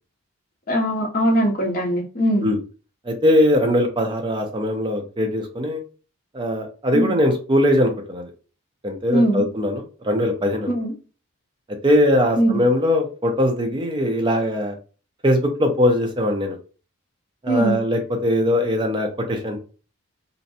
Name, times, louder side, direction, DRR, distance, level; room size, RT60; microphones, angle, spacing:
voice 1, 0.7-2.5 6.9-7.1 9.1-9.4 10.7-10.9 12.4-12.6 17.5-17.8, right 1 dB, 40° left, 0.6 m, -20 dB
voice 2, 3.0-5.8 6.3-8.3 8.8-10.8 11.8-14.7 15.2-16.6 17.4-19.6, left 1 dB, 20° right, 0.4 m, -21 dB
2.6 x 2.1 x 2.6 m
head